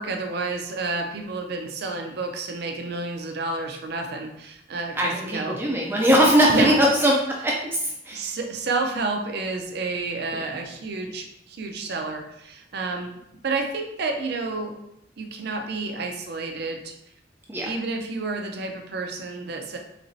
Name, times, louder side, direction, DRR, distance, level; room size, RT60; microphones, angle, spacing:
voice 1, 0.0-5.6 6.5-6.7 8.1-13.1 13.4-14.7 15.2-16.9 17.7-19.8, right 3 dB, 60° right, 4 dB, 0.6 m, -30 dB
voice 2, 4.9-8.3 10.3-10.5 17.5-17.7, equal, 10° right, -3 dB, 0.4 m, -21 dB
4.2 x 3.0 x 2.6 m, 0.80 s
head